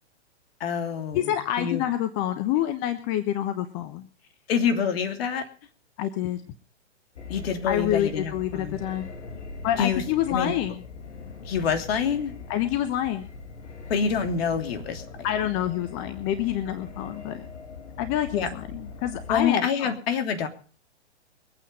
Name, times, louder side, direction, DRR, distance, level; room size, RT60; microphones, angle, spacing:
voice 1, 0.6-1.3 1.6-1.8 4.5-5.4 7.3-8.8 9.8-10.0 10.3-10.5 11.4-12.3 13.9-15.0 18.3-18.5 19.3-20.5, left 7 dB, 55° left, 6 dB, 3.1 m, -26 dB
voice 2, 1.1-4.1 6.0-6.4 7.7-9.1 9.6-10.8 12.5-13.3 15.2-17.4 18.0-19.9, left 12 dB, 30° left, 9 dB, 1.1 m, -27 dB
sound 1, 7.2-19.5, left 3 dB, 80° left, 2.3 m, -41 dB
22.5 x 8.9 x 5.5 m, 0.41 s
hypercardioid pair, 130°, 36 cm